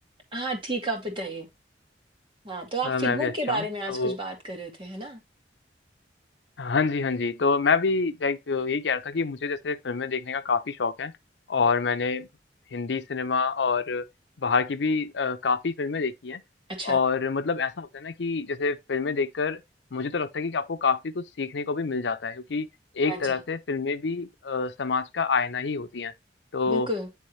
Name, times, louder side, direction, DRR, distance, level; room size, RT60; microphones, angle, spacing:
voice 1, 0.3-1.5 2.4-5.2 16.7-17.0 23.1-23.4 26.7-27.1, right 1 dB, 30° right, 2.0 m, -31 dB
voice 2, 2.8-4.2 6.6-11.1 11.5-12.3 12.7-14.0 14.4-16.4 16.8-19.6 19.9-22.7 23.0-26.1 26.5-26.9, left 4 dB, 80° left, 0.6 m, -27 dB
9.5 x 3.5 x 3.1 m
head